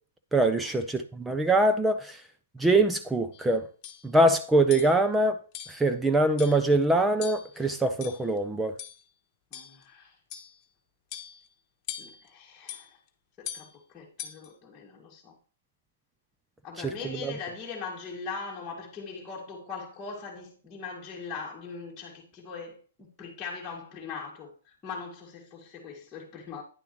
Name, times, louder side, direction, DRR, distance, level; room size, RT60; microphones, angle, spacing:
voice 1, 0.3-2.2 2.6-3.6 4.0-5.4 5.7-8.7 17.2-17.3, right 2 dB, 5° right, 0.7 m, -23 dB
sound 1, 3.3-3.5 3.8-4.1 4.7-5.0 5.5-5.8 6.4-6.7 7.2-7.6 8.0-8.4 8.8-9.0 9.5-9.8 10.3-10.6 11.1-11.5 11.9-12.3 12.7-12.9 13.4-13.7 14.2-14.5, left 10 dB, 35° left, 1.3 m, -41 dB
voice 2, 9.5-10.2 12.0-13.0 13.4-15.4 16.6-26.6, left 5 dB, 20° left, 2.1 m, -41 dB
10.0 x 6.7 x 3.1 m
hypercardioid pair, 125°, 0 cm